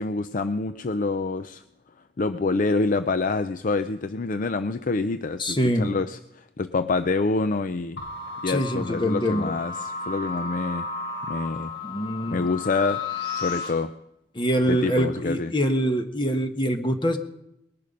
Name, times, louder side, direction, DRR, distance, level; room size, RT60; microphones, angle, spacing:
voice 1, 0.0-1.6 2.2-8.0 8.4-10.9 11.3-11.7 12.3-13.9 14.7-15.5, left 3 dB, 50° left, 11 dB, 0.5 m, -27 dB
voice 2, 5.4-6.0 8.5-9.6 11.8-12.5 14.3-17.2, equal, 30° left, 7 dB, 1.2 m, -24 dB
sound 1, 8.0-13.7, left 5 dB, 85° left, 4.3 m, -33 dB
20.5 x 10.5 x 5.3 m, 0.84 s
head